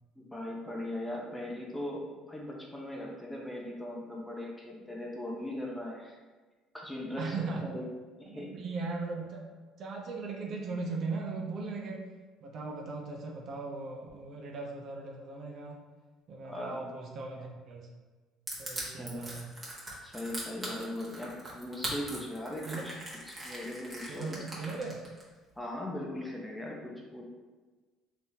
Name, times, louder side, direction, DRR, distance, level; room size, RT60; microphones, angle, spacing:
voice 1, 0.2-6.2 6.7-7.9 8.2-8.5 16.4-16.8 18.8-19.3 20.0-23.0 23.3-24.4 25.6-27.2, left 1 dB, 5° left, -2 dB, 0.6 m, -39 dB
voice 2, 7.2-7.6 8.3-9.4 9.8-12.1 12.4-15.8 16.3-17.9 18.6-19.5 20.7-20.8 22.7-22.8 24.1-25.0, right 3 dB, 50° right, -1 dB, 0.6 m, -38 dB
Crushing, 18.5-25.2, right 2 dB, 20° right, 1.0 m, -40 dB
3.4 x 2.9 x 2.8 m, 1.3 s
cardioid pair, 115°, 0 cm